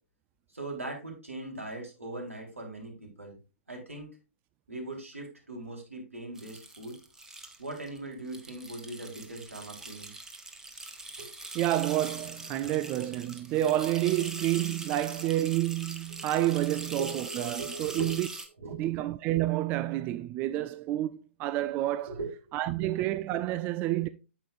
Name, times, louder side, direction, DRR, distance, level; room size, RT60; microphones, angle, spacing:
voice 1, 0.5-3.4 3.7-4.1 4.7-6.9 7.6-10.1 11.2-11.3 12.6-12.7 17.0-18.2 18.6-18.9 22.1-22.5, right 2 dB, 85° right, 3.6 m, -40 dB
sound 1, 6.4-8.0 8.3-18.5, right 2 dB, 5° right, 0.9 m, -43 dB
voice 2, 11.5-18.3 18.7-22.1 22.5-24.1, right 14 dB, 25° right, 0.4 m, -29 dB
8.9 x 7.6 x 2.4 m
figure-of-eight pair, 120°, 7 cm